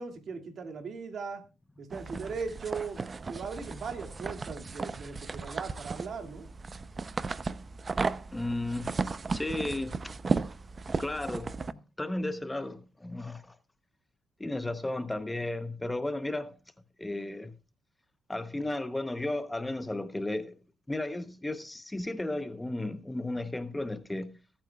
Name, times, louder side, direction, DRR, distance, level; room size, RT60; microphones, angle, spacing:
voice 1, 0.0-1.4 1.8-3.0 3.3-6.5, right 5 dB, 60° right, 2.3 m, -38 dB
sound 1, 1.9-11.7, right 4 dB, 35° right, 0.6 m, -35 dB
voice 2, 8.3-8.9 9.3-10.1 10.9-13.6 14.4-16.6 17.0-17.6 18.3-20.6 20.9-24.3, left 2 dB, 10° left, 0.9 m, -34 dB
23.0 x 8.8 x 2.4 m
cardioid pair, 90°, 0 cm